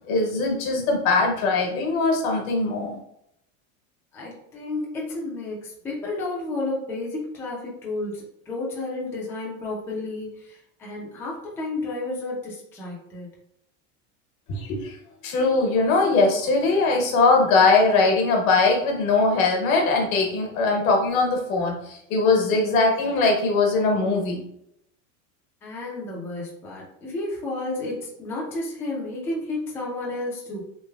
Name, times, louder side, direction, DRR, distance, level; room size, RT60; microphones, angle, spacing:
voice 1, 0.1-3.0 14.5-14.9 15.2-24.4, left 3 dB, 75° left, 1 dB, 1.2 m, -21 dB
voice 2, 4.1-13.3 25.6-30.6, left 2 dB, 5° left, -5 dB, 0.3 m, -32 dB
3.2 x 2.8 x 2.3 m, 0.76 s
supercardioid pair, 150°, 41 cm